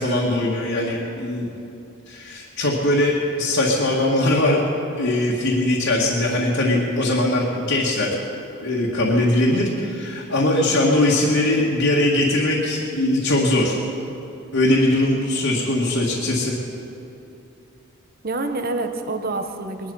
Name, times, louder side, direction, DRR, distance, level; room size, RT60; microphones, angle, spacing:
voice 1, 0.0-1.5 2.1-4.6 5.0-8.2 8.6-13.8 14.5-16.5, left 1 dB, 60° left, -5 dB, 1.9 m, -20 dB
voice 2, 9.5-9.9 18.2-19.9, right 2 dB, 45° right, 7 dB, 1.0 m, -27 dB
21.5 x 11.5 x 5.5 m, 2.9 s
head